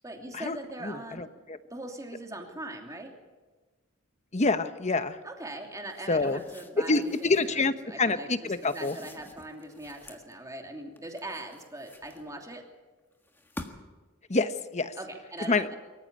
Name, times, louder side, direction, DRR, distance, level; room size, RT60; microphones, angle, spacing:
voice 1, 0.0-1.3 1.7-3.1 5.2-12.6 14.9-15.8, right 1 dB, 15° right, 2 dB, 2.9 m, -41 dB
voice 2, 0.8-1.6 4.3-5.2 6.1-6.4 6.8-9.0 14.3-14.9 15.5-15.7, left 3 dB, 35° left, 11 dB, 1.0 m, -27 dB
sound 1, 5.9-7.6 8.5-10.3 11.0-12.6 13.2-14.0, left 1 dB, 10° left, 1.6 m, -48 dB
23.5 x 14.5 x 8.6 m, 1.3 s
head